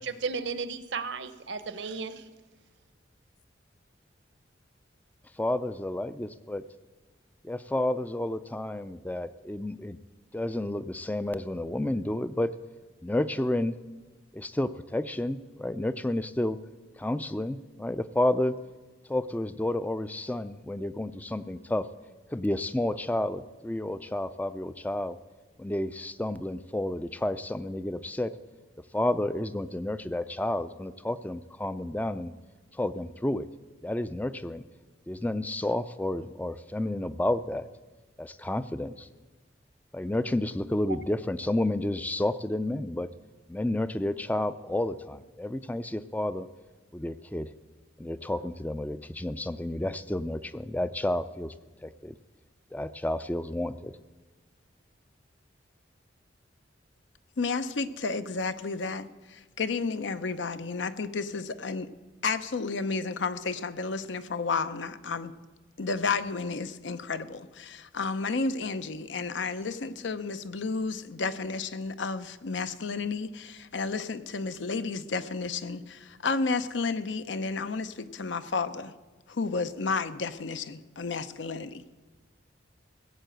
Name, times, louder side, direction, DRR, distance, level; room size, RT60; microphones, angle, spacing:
voice 1, 0.0-2.1, right 5 dB, 70° right, 12 dB, 0.9 m, -34 dB
voice 2, 5.4-6.6 7.4-10.0 10.3-12.5 13.0-13.8 14.3-16.6 17.0-18.6 19.1-21.9 22.3-25.2 25.6-28.3 28.9-32.3 32.7-33.5 33.8-34.6 35.1-37.6 38.2-39.1 39.9-43.1 43.5-46.5 46.9-47.5 48.0-51.5 51.8-52.2 52.7-53.9, left 1 dB, 10° left, 14 dB, 0.4 m, -30 dB
voice 3, 57.4-61.9 62.2-65.3 65.8-78.9 79.3-81.9, left 4 dB, 75° left, 12 dB, 0.7 m, -32 dB
16.0 x 7.6 x 7.8 m, 1.3 s
head